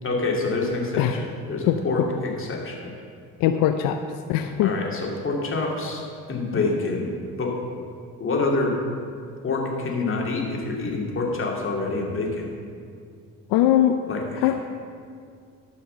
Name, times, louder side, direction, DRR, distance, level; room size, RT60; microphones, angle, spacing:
voice 1, 0.0-2.9 4.6-7.1 7.4-7.6 8.2-8.8 9.4-12.5 14.1-14.5, left 3 dB, 40° left, 0 dB, 2.4 m, -27 dB
voice 2, 3.4-4.0 4.3-4.7 13.5-14.0 14.4-14.6, left 11 dB, 85° left, 7 dB, 0.6 m, -20 dB
12.5 x 5.6 x 6.7 m, 2.3 s
cardioid pair, 90°, 33 cm